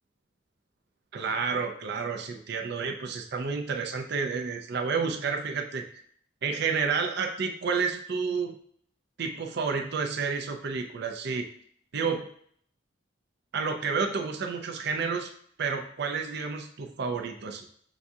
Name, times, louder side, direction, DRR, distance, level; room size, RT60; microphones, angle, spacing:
voice 1, 1.1-5.8 6.4-8.5 9.2-11.5 11.9-12.3 13.5-15.3 15.6-17.7, right 5 dB, 60° right, 4 dB, 0.5 m, -30 dB
6.9 x 2.4 x 2.7 m, 0.62 s
head